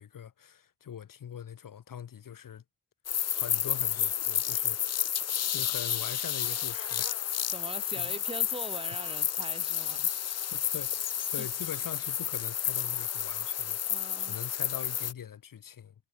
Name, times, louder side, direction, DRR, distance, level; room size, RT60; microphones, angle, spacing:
voice 1, 0.0-2.6 3.3-4.8 5.2-7.5 8.0-8.2 10.5-13.8 14.2-15.9, left 9 dB, 85° left, 3.7 m, -43 dB
sound 1, 3.1-15.1, left 9 dB, 50° left, 0.6 m, -31 dB
voice 2, 7.5-10.5 11.4-11.5 13.9-14.4, right 2 dB, 15° right, 5.5 m, -42 dB
wide cardioid pair, 175°, 32 cm